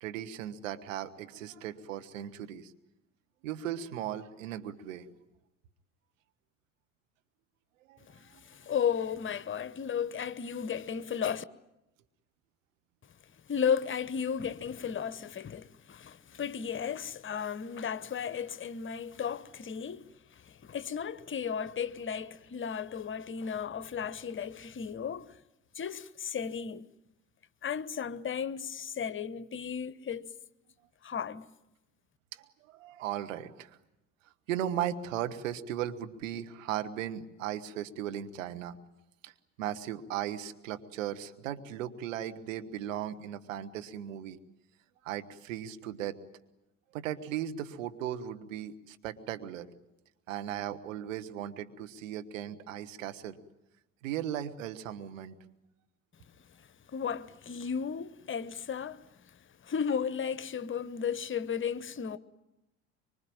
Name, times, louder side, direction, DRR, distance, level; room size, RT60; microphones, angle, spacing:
voice 1, 0.0-2.7 3.4-5.1 7.9-8.1 32.3-33.8 34.5-38.8 39.2-39.3 39.6-44.4 45.0-46.2 46.9-49.7 50.3-53.4 54.0-55.3, right 11 dB, 75° right, 1.5 m, -37 dB
voice 2, 8.1-11.4 13.5-25.4 25.7-26.9 27.6-30.3 31.0-31.5 56.5-59.1 59.6-62.2, left 7 dB, 30° left, 1.1 m, -34 dB
24.5 x 24.5 x 8.9 m
figure-of-eight pair, 60°, 39 cm